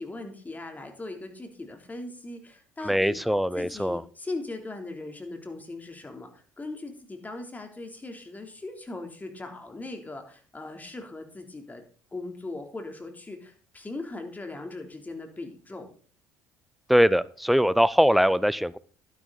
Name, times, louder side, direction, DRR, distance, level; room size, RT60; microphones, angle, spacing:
voice 1, 0.0-3.2 3.5-11.8 12.1-15.9, left 2 dB, 20° left, 4 dB, 3.5 m, -39 dB
voice 2, 2.8-4.0 16.9-18.8, equal, ahead, 19 dB, 0.7 m, -22 dB
11.5 x 11.0 x 4.1 m, 0.40 s
hypercardioid pair, 65°, 8 cm